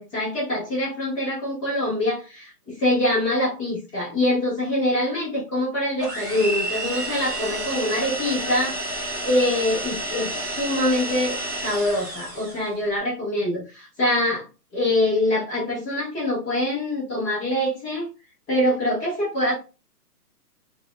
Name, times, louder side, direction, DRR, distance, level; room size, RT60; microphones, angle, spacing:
voice 1, 0.0-11.4 11.6-14.4 14.7-18.1 18.5-19.5, left 1 dB, 15° left, -6 dB, 1.3 m, -24 dB
sound 1, 6.0-12.7, right 1 dB, 10° right, 0.5 m, -30 dB
4.7 x 2.8 x 2.2 m, 0.31 s
hypercardioid pair, 155°, 47 cm